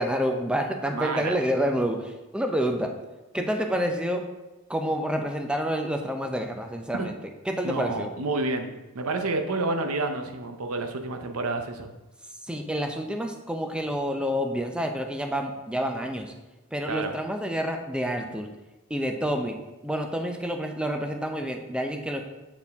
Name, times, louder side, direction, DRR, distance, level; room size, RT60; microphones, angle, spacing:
voice 1, 0.0-2.9 3.3-4.2 4.7-7.1 7.5-8.1 12.4-16.3 16.7-18.5 18.9-19.6 19.8-22.2, equal, 5° right, 4 dB, 0.5 m, -28 dB
voice 2, 0.9-1.4 6.9-7.1 7.6-8.7 8.9-11.9 16.9-17.1, right 3 dB, 85° right, 6 dB, 0.7 m, -29 dB
7.0 x 4.6 x 3.5 m, 1.1 s
head